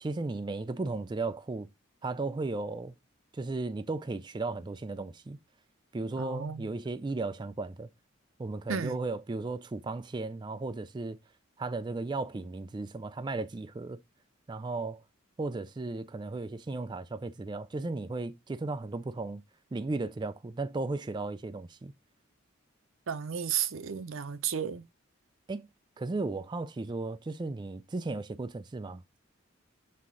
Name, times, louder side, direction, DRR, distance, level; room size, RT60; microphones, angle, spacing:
voice 1, 0.0-1.7 2.0-2.9 3.3-5.4 5.9-7.9 8.4-11.2 11.6-14.0 14.5-15.0 15.4-19.4 19.7-21.9 25.5-25.7 26.0-29.0, right 3 dB, 20° right, 0.3 m, -35 dB
voice 2, 6.2-6.7 8.7-9.0 23.1-24.8, right 8 dB, 85° right, 0.6 m, -33 dB
7.6 x 3.6 x 3.7 m
head